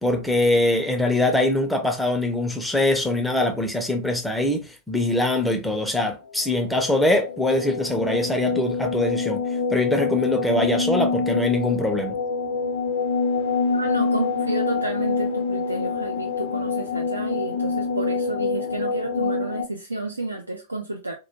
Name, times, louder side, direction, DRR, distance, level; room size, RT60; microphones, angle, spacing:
voice 1, 0.0-9.4 9.7-12.2, left 1 dB, 5° left, 0.4 m, -23 dB
sound 1, 6.2-19.6, left 4 dB, 65° left, 0.6 m, -26 dB
voice 2, 13.7-21.1, right 2 dB, 80° right, 0.3 m, -31 dB
2.1 x 2.1 x 2.8 m
figure-of-eight pair, 90°, 0 cm